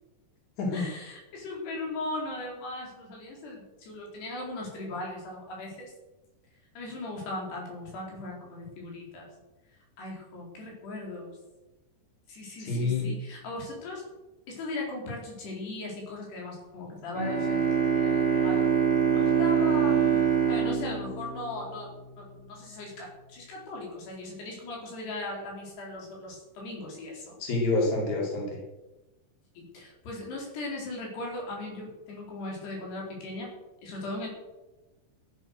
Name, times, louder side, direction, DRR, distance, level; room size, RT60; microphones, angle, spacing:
voice 1, 0.7-5.9 6.8-9.3 10.0-11.4 12.3-14.0 14.5-18.7 19.1-27.4 29.6-33.5 33.8-34.3, left 2 dB, 90° left, -1 dB, 6.4 m, -38 dB
voice 2, 12.6-13.1 27.4-28.6, left 2 dB, 45° left, -3 dB, 5.5 m, -27 dB
Bowed string instrument, 17.1-22.1, right 7 dB, 25° left, 1.6 m, -25 dB
15.5 x 11.0 x 6.6 m, 1.1 s
omnidirectional pair, 4.6 m